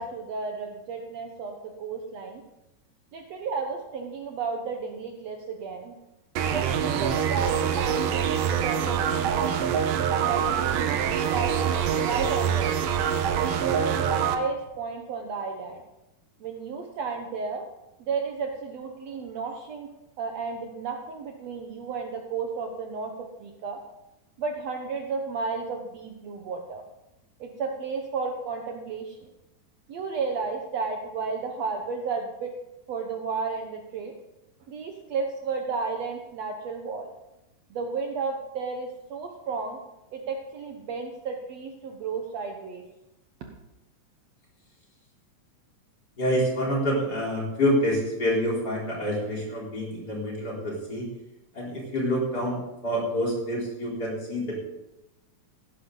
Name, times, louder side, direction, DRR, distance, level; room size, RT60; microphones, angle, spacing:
voice 1, 0.0-1.5 1.8-2.4 3.1-5.9 6.5-9.7 10.2-12.7 13.4-15.8 16.4-17.6 18.0-19.9 20.2-23.8 24.4-26.8 27.4-29.2 29.9-32.5 32.9-34.1 34.7-37.1 37.7-39.8 40.1-42.8, right 4 dB, 65° right, 2 dB, 1.9 m, -33 dB
sound 1, 6.4-14.4, right 8 dB, 80° right, 2.5 m, -25 dB
voice 2, 46.2-51.1 51.5-54.6, equal, 30° left, -4 dB, 4.3 m, -27 dB
16.0 x 11.5 x 3.9 m, 0.93 s
omnidirectional pair, 3.8 m